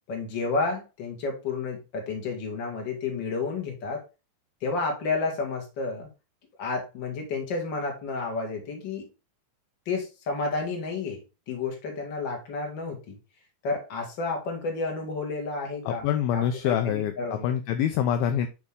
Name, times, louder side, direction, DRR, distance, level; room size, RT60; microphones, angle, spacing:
voice 1, 0.1-4.0 4.6-6.1 6.6-9.1 9.9-11.2 11.5-13.2 13.6-17.5, left 3 dB, 35° left, 1 dB, 2.1 m, -31 dB
voice 2, 15.9-18.5, left 9 dB, 80° left, 7 dB, 2.2 m, -26 dB
10.5 x 3.6 x 3.6 m, 0.28 s
omnidirectional pair, 4.8 m